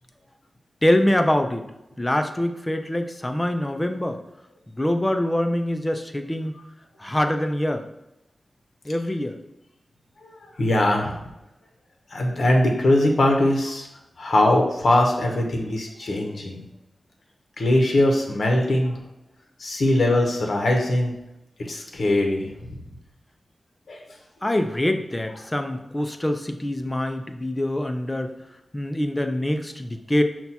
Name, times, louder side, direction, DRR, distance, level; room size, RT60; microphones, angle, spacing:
voice 1, 0.8-1.6 2.0-4.2 4.8-6.6 7.0-7.8 8.9-9.4 24.4-28.3 28.7-30.2, left 1 dB, 15° left, 6 dB, 0.3 m, -24 dB
voice 2, 10.6-11.2 12.1-13.8 14.2-16.6 17.6-19.0 19.6-21.1 21.7-22.5 23.9-24.0, left 1 dB, 65° left, 1 dB, 0.7 m, -21 dB
5.6 x 2.2 x 4.1 m, 0.90 s
wide cardioid pair, 140°, 0 cm